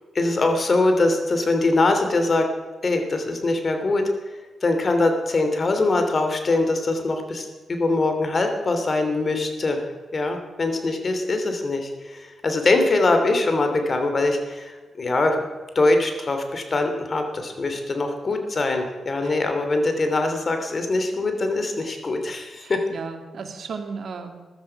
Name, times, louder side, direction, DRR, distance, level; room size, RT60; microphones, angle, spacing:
voice 1, 0.1-2.5 2.8-4.0 4.6-9.8 10.1-14.7 15.0-15.4 15.7-22.8, left 2 dB, 45° left, 6 dB, 3.1 m, -22 dB
voice 2, 22.6-24.5, right 5 dB, 65° right, 5 dB, 2.2 m, -35 dB
14.5 x 12.5 x 5.9 m, 1.3 s
cardioid pair, 70°, 0 cm